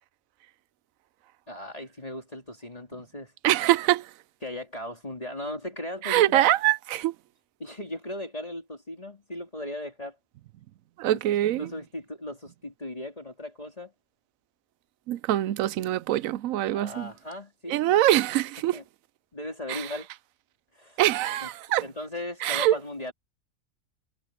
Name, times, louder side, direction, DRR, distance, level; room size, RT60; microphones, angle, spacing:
voice 1, 1.5-3.3 4.4-6.5 7.6-10.2 11.1-11.2 11.6-13.9 16.7-18.0 18.7-18.8 19.3-20.1 20.7-21.0 21.4-21.5 21.8-23.1, left 1 dB, 25° left, 3.7 m, -37 dB
voice 2, 3.4-4.1 6.0-7.1 11.0-11.7 15.1-17.1 17.7-18.8 19.7-19.9 21.0-21.8 22.4-22.8, right 13 dB, 80° right, 1.0 m, -24 dB
omnidirectional pair, 1.4 m